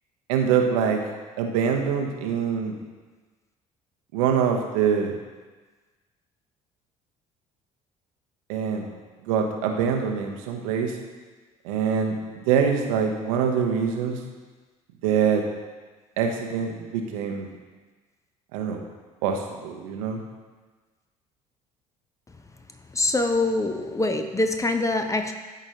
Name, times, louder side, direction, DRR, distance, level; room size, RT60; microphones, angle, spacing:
voice 1, 0.3-1.0 1.4-2.7 4.1-5.1 8.5-8.9 9.3-10.9 11.6-12.2 12.5-14.2 15.0-15.4 16.2-17.5 18.5-18.8 19.2-20.2, right 7 dB, 65° right, 2 dB, 0.9 m, -24 dB
voice 2, 22.9-25.3, left 2 dB, 15° left, 6 dB, 0.7 m, -24 dB
13.0 x 5.0 x 2.9 m, 1.3 s
figure-of-eight pair, 55°, 19 cm